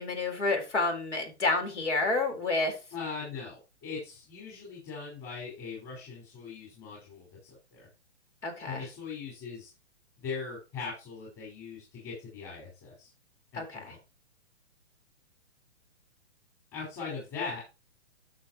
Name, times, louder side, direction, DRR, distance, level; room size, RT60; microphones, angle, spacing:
voice 1, 0.0-2.7 8.4-8.9 13.5-13.9, left 3 dB, 80° left, 5 dB, 4.1 m, -29 dB
voice 2, 2.9-7.9 8.6-9.7 10.2-13.1 13.5-14.0 16.7-17.6, left 5 dB, 25° left, -4 dB, 4.8 m, -40 dB
13.0 x 6.5 x 3.0 m, 0.29 s
hypercardioid pair, 150°, 35 cm